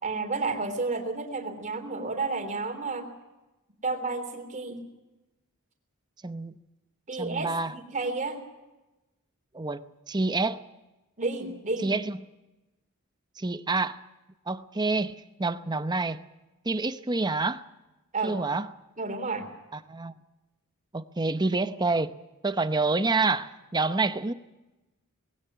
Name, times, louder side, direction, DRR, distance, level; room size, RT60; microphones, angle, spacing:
voice 1, 0.0-3.1 3.8-4.8 7.1-8.4 11.2-11.9 18.1-18.4 19.0-19.5, right 3 dB, 35° right, 3.5 m, -31 dB
voice 2, 6.2-6.5 7.2-7.7 9.5-10.6 11.8-12.2 13.4-14.0 14.5-16.2 16.6-17.6 18.2-18.7 19.7-20.1 20.9-22.1 22.4-24.3, right 3 dB, 20° right, 0.8 m, -28 dB
20.0 x 17.0 x 9.3 m
head